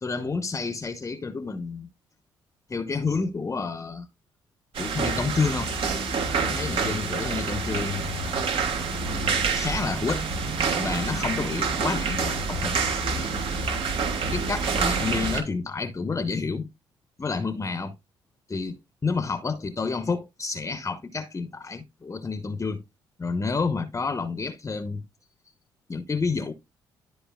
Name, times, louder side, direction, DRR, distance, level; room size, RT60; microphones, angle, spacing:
voice 1, 0.0-1.9 2.7-4.1 4.8-5.7 6.3-8.1 9.5-10.3 10.8-12.8 14.3-16.7 17.2-17.9 18.5-22.8 23.2-25.0 25.9-26.5, left 4 dB, 30° left, 1.0 m, -29 dB
sound 1, 4.7-15.4, right 4 dB, 65° right, 2.8 m, -27 dB
13.0 x 4.8 x 2.4 m
hypercardioid pair, 55°, 10 cm